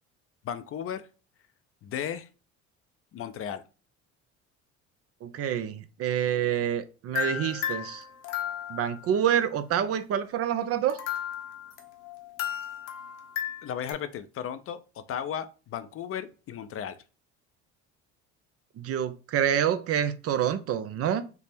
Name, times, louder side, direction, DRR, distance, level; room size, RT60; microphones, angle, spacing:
voice 1, 0.4-1.0 1.8-2.3 3.1-3.6 13.6-14.8 15.1-16.9, left 9 dB, 45° left, 11 dB, 0.4 m, -35 dB
voice 2, 5.2-8.0 8.7-11.0 18.8-21.3, right 9 dB, 45° right, 12 dB, 0.5 m, -27 dB
sound 1, 7.1-9.1 10.9-13.9, left 10 dB, 75° left, 0.8 m, -34 dB
3.3 x 2.0 x 4.2 m, 0.34 s
supercardioid pair, 75°, 33 cm